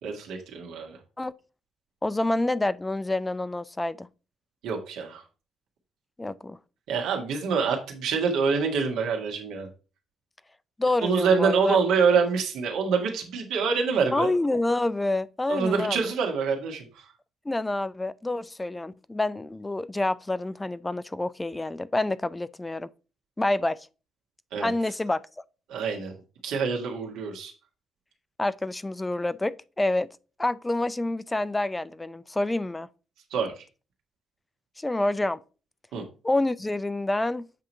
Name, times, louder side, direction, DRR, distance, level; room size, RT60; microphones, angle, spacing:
voice 1, 0.0-1.0 4.6-5.2 6.9-9.7 11.0-14.3 15.5-17.1 24.5-24.7 25.7-26.1 26.4-27.5 33.3-33.6 35.9-36.0, right 5 dB, 80° right, 1.6 m, -26 dB
voice 2, 2.0-4.1 6.2-6.6 10.8-11.8 14.1-16.0 17.5-22.9 23.4-23.9 24.6-25.2 28.4-30.1 30.4-32.9 34.8-35.4 36.2-37.5, left 2 dB, 15° left, 0.4 m, -27 dB
7.6 x 2.9 x 5.3 m
supercardioid pair, 70°, 0 cm